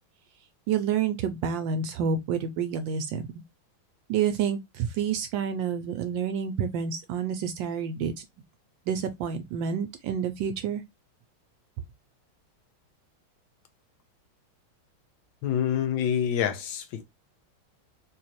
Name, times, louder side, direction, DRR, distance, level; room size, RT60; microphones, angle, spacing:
voice 1, 0.7-3.2 4.1-8.2 8.9-10.8, right 7 dB, 75° right, 1.2 m, -28 dB
voice 2, 15.4-17.0, left 9 dB, 75° left, 1.5 m, -27 dB
4.0 x 2.8 x 2.9 m
omnidirectional pair, 2.2 m